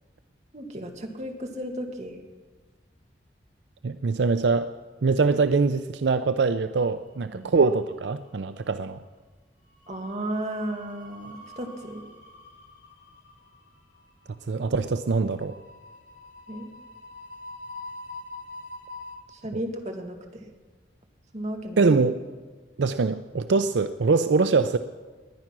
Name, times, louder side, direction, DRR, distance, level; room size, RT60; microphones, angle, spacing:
voice 1, 0.5-2.2 7.3-7.5 9.9-12.0 16.5-16.7 19.4-20.2 21.3-21.8, right 1 dB, 40° right, 3 dB, 2.0 m, -34 dB
voice 2, 3.8-4.7 5.0-9.0 14.5-15.5 19.5-19.6 21.8-22.2 22.8-24.8, right 4 dB, 80° right, 11 dB, 0.5 m, -23 dB
sound 1, 7.1-7.9 8.2-8.4 9.6-19.2, left 2 dB, 90° left, 4.2 m, -45 dB
19.5 x 10.5 x 6.1 m, 1.4 s
head